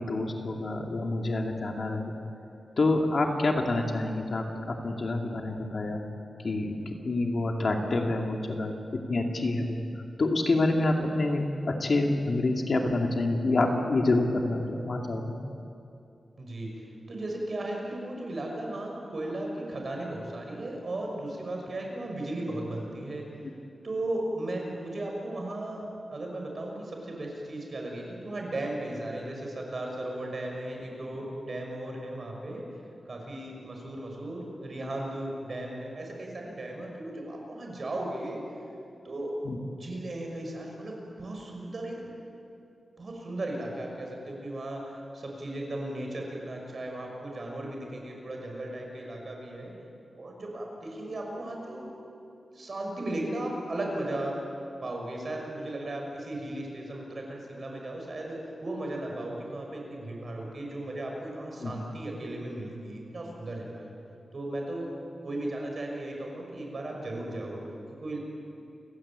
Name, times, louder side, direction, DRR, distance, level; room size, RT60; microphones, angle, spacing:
voice 1, 0.0-2.1 2.8-6.0 6.4-9.8 10.2-15.3 39.4-39.6 61.6-61.7, left 2 dB, 50° left, 2 dB, 2.5 m, -27 dB
voice 2, 16.4-23.3 23.8-32.7 33.0-38.4 39.0-39.4 39.8-42.1 43.0-49.7 50.2-51.9 52.5-54.4 54.8-63.9 64.3-64.9 65.2-67.6 68.0-68.2, right 1 dB, 45° right, 0 dB, 6.1 m, -36 dB
29.5 x 17.0 x 8.9 m, 2.7 s
wide cardioid pair, 150°, 0 cm